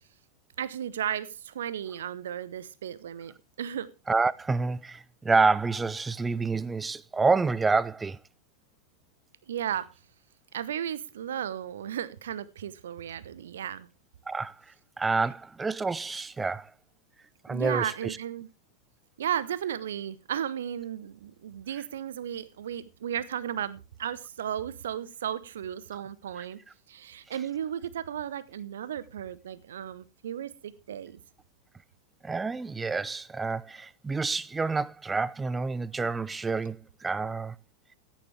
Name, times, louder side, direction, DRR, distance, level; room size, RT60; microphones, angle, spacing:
voice 1, 0.6-3.9 9.5-9.9 10.5-13.9 17.5-18.5 19.2-26.6 26.9-31.2, right 9 dB, 60° right, 0.8 m, -34 dB
voice 2, 4.1-8.2 14.3-14.6 15.0-16.7 17.4-18.2 32.2-37.5, right 4 dB, 10° right, 0.5 m, -28 dB
14.5 x 10.0 x 3.4 m
figure-of-eight pair, 90°, 0 cm